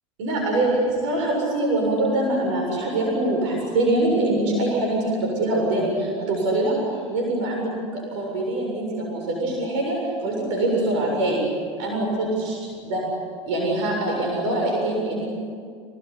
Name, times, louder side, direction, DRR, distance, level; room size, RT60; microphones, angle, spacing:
voice 1, 0.2-11.4 11.8-12.6 12.8-13.0 13.5-15.3, right 1 dB, 75° right, -1 dB, 7.4 m, -24 dB
28.0 x 19.0 x 9.9 m, 2.2 s
hypercardioid pair, 90°, 16 cm